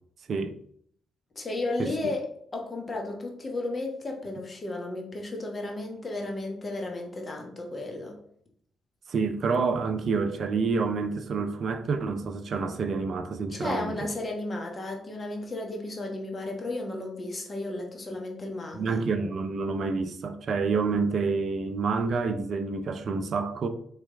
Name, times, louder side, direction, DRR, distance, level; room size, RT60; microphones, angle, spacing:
voice 1, 1.3-8.2 13.5-19.0, left 2 dB, 35° left, 1.1 m, -34 dB
voice 2, 9.1-14.1 18.7-23.7, right 4 dB, 55° right, 0.4 m, -28 dB
4.0 x 3.1 x 3.4 m
hypercardioid pair, 50°, 0 cm